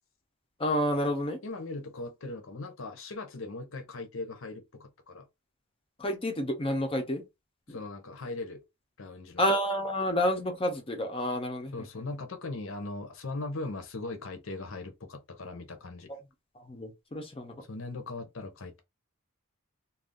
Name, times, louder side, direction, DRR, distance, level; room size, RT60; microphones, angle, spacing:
voice 1, 0.6-1.4 6.0-7.2 7.7-7.8 9.4-11.7 16.6-17.5, equal, 25° left, 0.6 m, -29 dB
voice 2, 1.4-5.3 7.7-8.6 9.0-9.4 11.7-16.1 17.7-18.8, left 2 dB, 65° left, 0.7 m, -39 dB
2.6 x 2.3 x 3.5 m
head